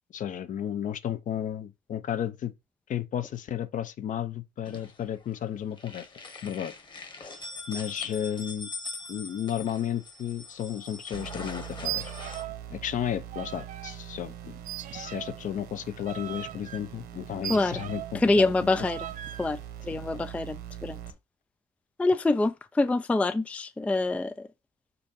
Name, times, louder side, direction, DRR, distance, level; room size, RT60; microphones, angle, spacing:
voice 1, 0.1-2.5 2.9-6.1 6.4-6.7 7.1-7.3 7.7-8.7 9.1-12.1 12.7-14.6 14.9-18.5 19.9-20.0, left 10 dB, 50° left, 0.7 m, -33 dB
sound 1, 4.6-5.4 5.7-12.4, left 3 dB, 25° left, 1.2 m, -42 dB
sound 2, 11.1-21.1, right 10 dB, 70° right, 1.3 m, -43 dB
sound 3, 11.8-12.7 12.9-14.0 14.6-18.2 18.7-19.5, right 12 dB, 50° right, 0.6 m, -39 dB
voice 2, 18.2-19.1 19.4-19.6 19.8-21.0 22.0-24.5, left 2 dB, 10° left, 0.3 m, -25 dB
6.8 x 2.6 x 5.4 m
cardioid pair, 110°, 17 cm